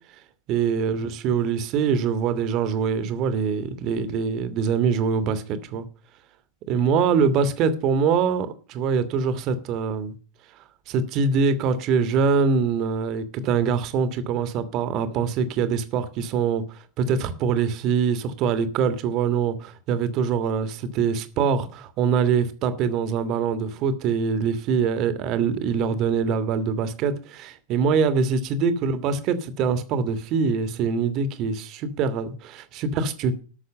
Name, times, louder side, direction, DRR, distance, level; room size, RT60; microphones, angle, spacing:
voice 1, 0.5-5.8 6.7-10.1 10.9-16.6 17.0-33.4, right 6 dB, 40° right, 1.5 m, -24 dB
13.0 x 6.5 x 7.6 m
figure-of-eight pair, 90°, 0 cm